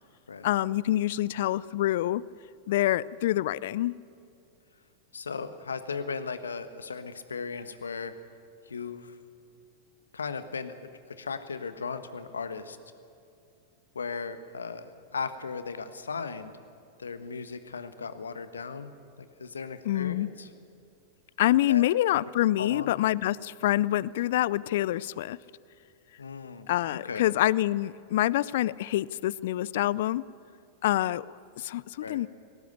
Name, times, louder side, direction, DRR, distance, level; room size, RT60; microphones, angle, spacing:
voice 1, 0.4-2.2 2.7-4.0 19.9-20.3 21.4-25.4 26.7-30.2 30.8-32.3, left 14 dB, 60° left, 22 dB, 0.4 m, -26 dB
voice 2, 5.1-8.1 8.7-9.1 10.1-10.7 11.2-12.8 13.9-14.8 15.1-16.5 17.0-18.9 19.2-20.5 21.7-21.8 22.6-22.9 26.2-27.3 32.0-32.2, left 5 dB, 80° left, 11 dB, 1.2 m, -37 dB
18.0 x 17.5 x 8.0 m, 2.6 s
figure-of-eight pair, 95°, 0 cm